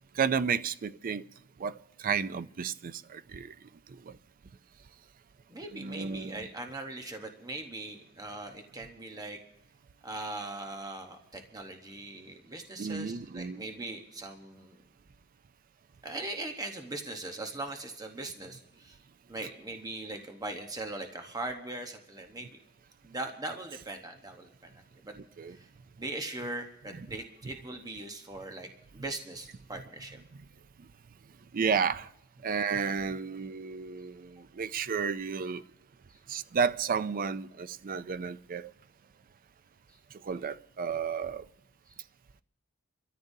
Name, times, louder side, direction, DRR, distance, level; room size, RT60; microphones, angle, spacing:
voice 1, 0.1-1.2 1.6-3.6 3.9-4.2 5.7-6.5 12.8-13.7 25.2-25.6 26.9-27.2 29.0-29.1 30.3-30.4 31.5-32.1 32.4-35.6 36.3-38.7 40.2-41.5, right 6 dB, 40° right, 0.4 m, -32 dB
voice 2, 5.5-9.4 10.0-14.8 16.0-19.0 19.3-22.6 23.0-24.7 25.0-25.1 25.5-25.7 26.0-28.7 28.9-30.2, right 2 dB, 20° right, 1.0 m, -40 dB
27.5 x 13.5 x 2.7 m
head